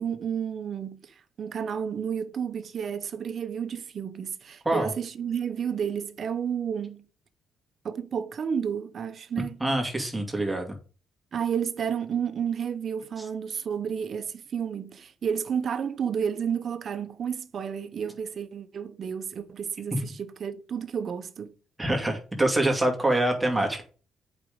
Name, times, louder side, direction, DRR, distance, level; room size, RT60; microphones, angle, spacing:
voice 1, 0.0-7.0 7.8-9.6 11.3-21.5, right 7 dB, 55° right, 0.9 m, -31 dB
voice 2, 9.6-10.7 19.9-20.0 21.8-23.8, right 1 dB, 10° right, 2.4 m, -25 dB
8.3 x 5.2 x 5.3 m
cardioid pair, 90°, 0 cm